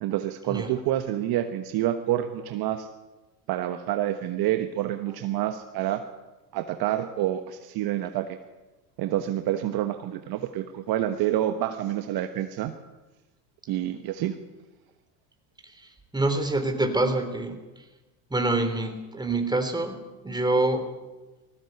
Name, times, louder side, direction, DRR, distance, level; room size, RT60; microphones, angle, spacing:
voice 1, 0.0-2.9 3.5-6.0 6.5-8.4 9.0-12.7 13.7-14.4, right 12 dB, 45° right, 8 dB, 1.3 m, -28 dB
voice 2, 16.1-17.6 18.3-20.9, right 2 dB, 10° right, 6 dB, 3.7 m, -26 dB
19.5 x 16.0 x 8.2 m, 1.1 s
hypercardioid pair, 85°, 50 cm